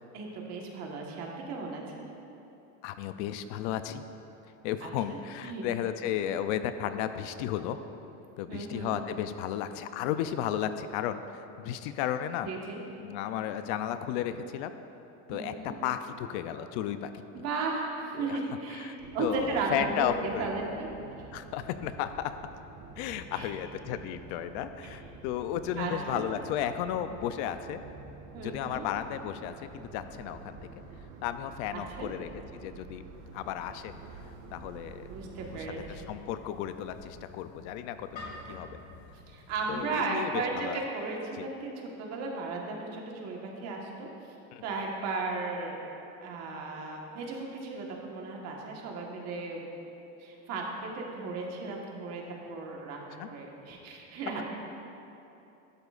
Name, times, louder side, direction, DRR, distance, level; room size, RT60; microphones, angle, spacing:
voice 1, 0.1-2.1 4.8-4.9 5.4-5.7 8.5-8.9 12.4-12.8 15.3-15.8 17.3-20.9 23.3-23.5 25.8-26.2 28.3-28.8 31.7-32.1 35.1-36.1 39.3-44.1 44.6-45.9 46.2-49.6 50.2-52.2 52.5-54.4, right 3 dB, 45° right, -1 dB, 1.4 m, -35 dB
voice 2, 2.8-4.0 4.6-7.8 8.4-12.5 13.0-14.7 15.3-17.2 18.1-18.4 18.7-20.5 21.3-22.3 23.0-27.8 28.4-30.6 31.2-33.0 33.3-33.9 34.5-35.1 35.5-38.1 38.5-38.8 39.7-40.8 41.4-41.5 44.5-44.6 53.2-53.3 54.4-54.5, left 10 dB, 70° left, 10 dB, 0.5 m, -34 dB
sound 1, 19.0-36.2, right 4 dB, 60° right, 1.0 m, -48 dB
sound 2, 33.1-39.9, left 2 dB, 25° left, 2.1 m, -50 dB
12.0 x 12.0 x 2.5 m, 2.9 s
cardioid pair, 175°, 36 cm